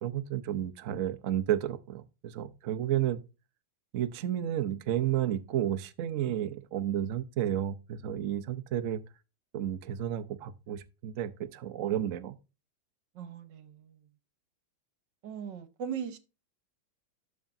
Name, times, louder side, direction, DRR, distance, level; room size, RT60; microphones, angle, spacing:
voice 1, 0.0-3.2 3.9-9.0 9.5-12.4, right 11 dB, 80° right, 0.7 m, -32 dB
voice 2, 13.1-13.9 15.2-16.2, right 7 dB, 65° right, 1.6 m, -39 dB
13.0 x 4.9 x 2.6 m
omnidirectional pair, 2.2 m